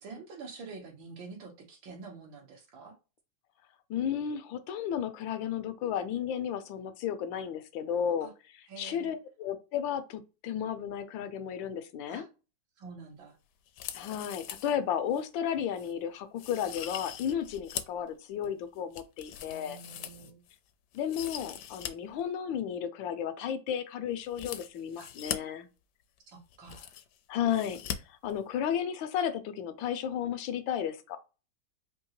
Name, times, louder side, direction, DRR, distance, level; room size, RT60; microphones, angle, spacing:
voice 1, 0.0-3.0 8.2-8.3 8.7-9.1 12.1-12.3 12.8-13.4 19.4-20.4 25.0-25.1 26.3-26.9, right 4 dB, 85° right, 2.0 m, -47 dB
voice 2, 3.9-8.3 8.8-12.2 13.9-19.8 20.9-25.7 27.3-31.2, left 9 dB, 90° left, 1.4 m, -33 dB
sound 1, 13.7-14.7 15.1-15.2 15.8-15.9 16.4-18.0 18.4-20.6 20.9-21.9 22.2-22.3 24.3-25.4 26.2-26.3 26.5-27.2 27.5-28.0 28.2-28.3, left 10 dB, 75° left, 1.0 m, -41 dB
4.5 x 2.8 x 2.9 m
omnidirectional pair, 2.1 m